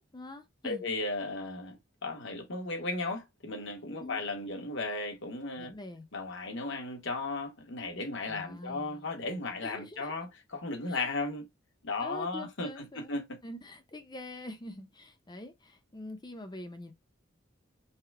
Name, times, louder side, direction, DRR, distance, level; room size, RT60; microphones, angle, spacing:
voice 1, 0.0-0.8 4.0-4.2 5.6-6.0 8.3-9.0 9.6-10.1 10.9-11.0 12.0-13.1 13.4-16.9, left 1 dB, 20° left, 0.8 m, -44 dB
voice 2, 0.6-5.7 6.1-11.5 11.8-13.4, left 3 dB, 65° left, 1.2 m, -35 dB
5.7 x 2.3 x 3.4 m
head